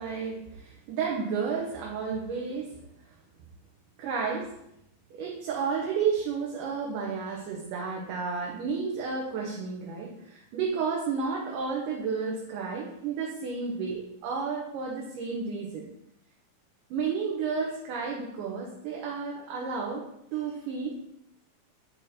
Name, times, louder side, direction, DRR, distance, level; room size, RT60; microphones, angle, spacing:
voice 1, 0.0-2.7 4.0-4.5 5.1-15.9 16.9-20.0 20.3-21.0, right 5 dB, 75° right, -2 dB, 2.3 m, -32 dB
8.4 x 3.6 x 4.2 m, 0.79 s
omnidirectional pair, 4.0 m